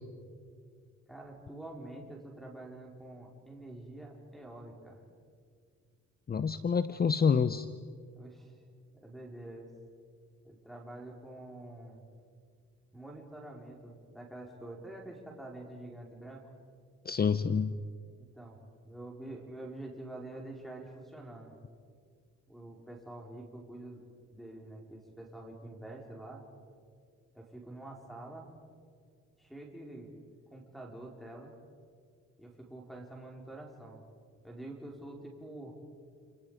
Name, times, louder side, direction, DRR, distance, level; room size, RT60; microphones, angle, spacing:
voice 1, 1.1-5.0 8.1-8.6 9.0-9.7 10.4-12.0 12.9-16.5 18.2-18.6 18.8-21.6 22.5-24.0 24.3-26.5 27.3-28.5 29.4-30.1 30.5-31.5 32.4-34.0 34.4-35.7, right 1 dB, ahead, -2 dB, 5.0 m, -46 dB
voice 2, 6.3-7.7 17.0-17.8, left 6 dB, 30° left, 13 dB, 0.8 m, -27 dB
29.5 x 28.5 x 5.2 m, 2.1 s
cardioid pair, 90°, 30 cm